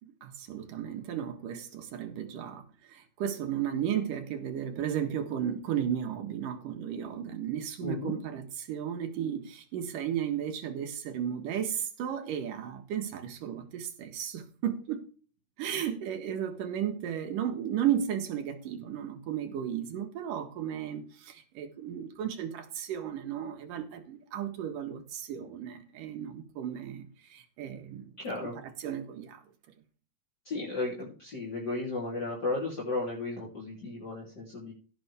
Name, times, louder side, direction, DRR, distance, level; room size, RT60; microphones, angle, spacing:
voice 1, 0.0-2.6 2.9-15.0 15.6-28.1 28.4-29.4, right 9 dB, 85° right, 3.2 m, -34 dB
voice 2, 7.8-8.1 28.2-28.6 30.5-34.7, left 2 dB, 30° left, 3.8 m, -34 dB
16.5 x 8.0 x 3.5 m
omnidirectional pair, 3.8 m